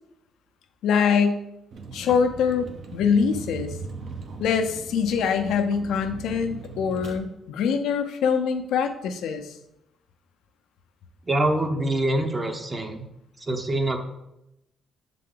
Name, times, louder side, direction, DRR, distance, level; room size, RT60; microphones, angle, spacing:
voice 1, 0.8-1.4 1.9-3.7 4.4-9.6, left 6 dB, 80° left, 7 dB, 0.6 m, -24 dB
Vehicle, 1.7-7.2, right 4 dB, 60° right, 0.8 m, -39 dB
voice 2, 11.2-13.1 13.4-14.0, right 1 dB, 30° right, 4 dB, 0.8 m, -25 dB
6.7 x 3.7 x 3.8 m, 0.86 s
cardioid pair, 90°, 0 cm